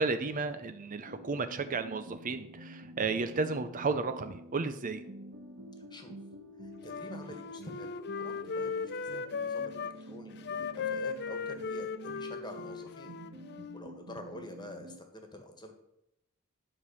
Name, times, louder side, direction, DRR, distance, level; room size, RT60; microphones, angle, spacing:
voice 1, 0.0-5.0, right 4 dB, 40° right, 10 dB, 0.5 m, -33 dB
sound 1, 1.0-15.0, equal, 55° right, 1.4 m, -48 dB
voice 2, 6.6-13.1 13.7-15.7, left 1 dB, 20° left, 5 dB, 1.6 m, -48 dB
Wind instrument woodwind instrument, 6.8-10.0 10.4-13.8, left 5 dB, 50° left, 0.6 m, -37 dB
11.5 x 5.0 x 7.0 m, 0.85 s
head